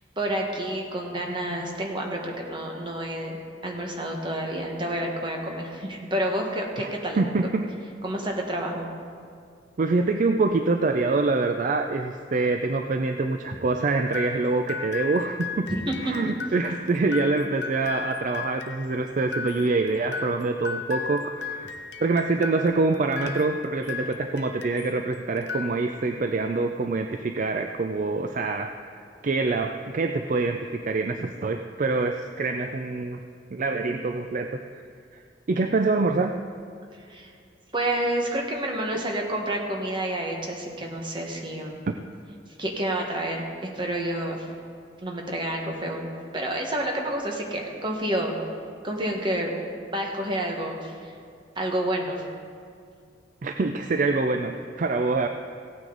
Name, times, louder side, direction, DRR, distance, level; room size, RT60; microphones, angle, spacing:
voice 1, 0.2-3.4 3.6-7.5 8.0-8.9 15.7-16.3 37.1-37.3 37.7-41.8 42.6-44.5 45.0-46.1 46.3-48.4 48.8-49.6 49.9-51.1 51.6-52.2, right 1 dB, 30° right, 0 dB, 1.4 m, -29 dB
voice 2, 7.2-7.7 9.8-15.7 16.0-21.8 22.0-28.8 29.2-33.2 33.5-34.6 35.5-36.4 38.9-39.1 41.9-42.0 53.4-55.3, right 3 dB, 45° right, 6 dB, 0.4 m, -25 dB
sound 1, 14.1-25.0 25.4-26.2, left 5 dB, 70° left, 0.7 m, -36 dB
16.0 x 9.1 x 3.9 m, 2.2 s
head